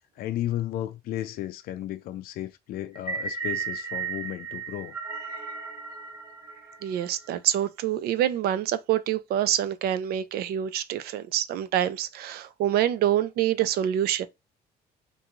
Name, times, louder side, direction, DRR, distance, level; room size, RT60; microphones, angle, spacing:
voice 1, 0.2-5.0, left 13 dB, 60° left, 0.4 m, -33 dB
sound 1, 2.9-7.3, right 5 dB, 20° right, 0.7 m, -35 dB
voice 2, 6.8-14.3, right 11 dB, 65° right, 0.4 m, -26 dB
2.6 x 2.3 x 2.9 m
cardioid pair, 110°, 17 cm